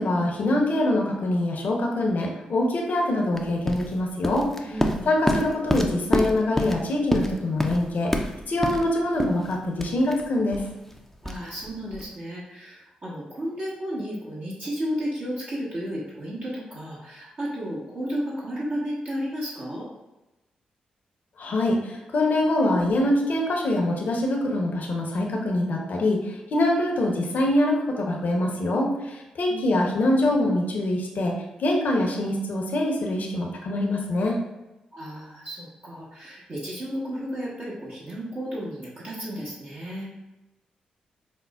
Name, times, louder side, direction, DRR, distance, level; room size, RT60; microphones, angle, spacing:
voice 1, 0.0-4.5 5.1-8.1 8.5-10.6 21.4-31.3 31.6-34.4, left 1 dB, 60° left, 0 dB, 0.8 m, -24 dB
sound 1, 3.3-12.1, equal, 10° left, 0.5 m, -29 dB
voice 2, 4.6-5.1 11.2-19.9 29.5-29.9 34.9-40.1, equal, 50° right, -8 dB, 1.1 m, -33 dB
5.2 x 2.1 x 2.3 m, 1.0 s
hypercardioid pair, 40°, 3 cm